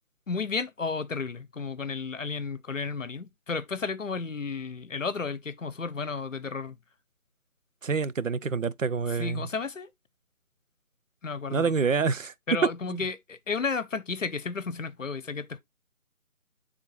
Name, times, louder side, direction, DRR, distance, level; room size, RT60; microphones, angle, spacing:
voice 1, 0.3-6.8 9.2-9.9 11.2-11.7 12.5-15.6, left 4 dB, 60° left, 0.8 m, -33 dB
voice 2, 7.8-9.5 11.5-12.3 12.9-13.0, right 5 dB, 65° right, 0.6 m, -27 dB
10.5 x 3.7 x 3.1 m
figure-of-eight pair, 160°, 43 cm